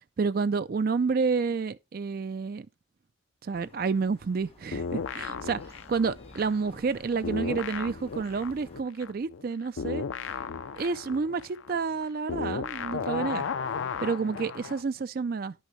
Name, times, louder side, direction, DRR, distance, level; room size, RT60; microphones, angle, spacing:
voice 1, 0.2-2.7 3.4-5.6 5.9-10.1 10.8-13.5 14.0-15.5, right 5 dB, 50° right, 0.4 m, -29 dB
sound 1, 3.5-8.8, left 1 dB, 30° left, 1.3 m, -52 dB
sound 2, 4.7-7.0 7.2-14.8, left 5 dB, 80° left, 0.5 m, -35 dB
10.5 x 6.3 x 3.1 m
head